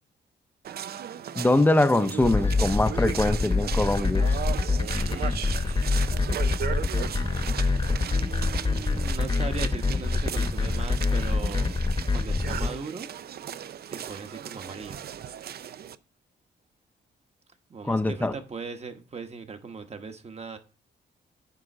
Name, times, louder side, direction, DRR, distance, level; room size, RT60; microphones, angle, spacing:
sound 1, 0.6-15.9, right 9 dB, 55° right, 0.5 m, -37 dB
voice 1, 1.4-4.4 17.8-18.3, left 2 dB, 10° left, 0.7 m, -23 dB
sound 2, 2.2-12.7, left 3 dB, 25° left, 1.1 m, -25 dB
voice 2, 4.8-6.0 7.4-11.8 12.1-13.1 13.9-15.0 17.7-20.6, right 4 dB, 35° right, 1.2 m, -39 dB
9.7 x 3.8 x 6.1 m
cardioid pair, 120°, 19 cm